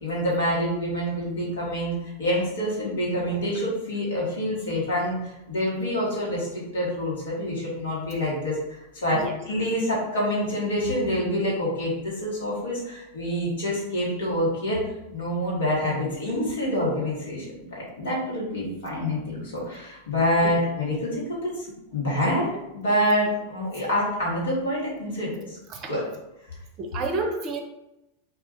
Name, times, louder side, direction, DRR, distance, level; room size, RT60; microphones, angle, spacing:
voice 1, 0.0-14.8 15.1-21.1 21.4-21.7 21.9-22.5 22.7-25.6 25.9-26.0, equal, 65° left, -5 dB, 1.2 m, -27 dB
voice 2, 26.8-27.6, right 3 dB, 35° right, 3 dB, 0.5 m, -30 dB
2.4 x 2.3 x 4.0 m, 0.90 s
figure-of-eight pair, 90°, 0 cm